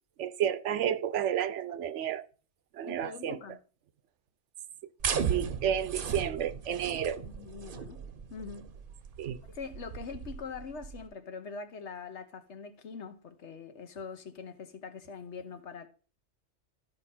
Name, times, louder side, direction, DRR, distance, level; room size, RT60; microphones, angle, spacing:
voice 1, 0.2-2.3 2.7-3.4 5.3-7.2 9.2-9.4, right 9 dB, 85° right, 1.0 m, -31 dB
voice 2, 2.9-3.6 7.2-8.0 8.3-8.7 9.5-15.9, left 5 dB, 75° left, 1.3 m, -43 dB
sound 1, 5.0-11.1, right 7 dB, 55° right, 0.9 m, -36 dB
13.0 x 4.9 x 4.3 m
omnidirectional pair, 1.2 m